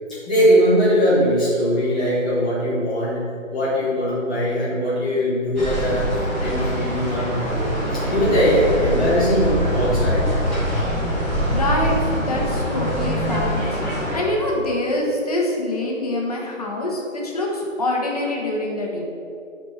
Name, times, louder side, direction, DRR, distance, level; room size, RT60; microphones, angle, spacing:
voice 1, 0.2-3.2 3.5-6.1 6.4-10.2, equal, 5° left, -13 dB, 0.8 m, -20 dB
sound 1, 5.5-14.2, equal, 10° right, 2.1 m, -23 dB
voice 2, 11.5-13.6 13.9-19.0, left 1 dB, 30° left, -1 dB, 1.2 m, -25 dB
9.4 x 4.4 x 5.7 m, 2.6 s
figure-of-eight pair, 165°, 40 cm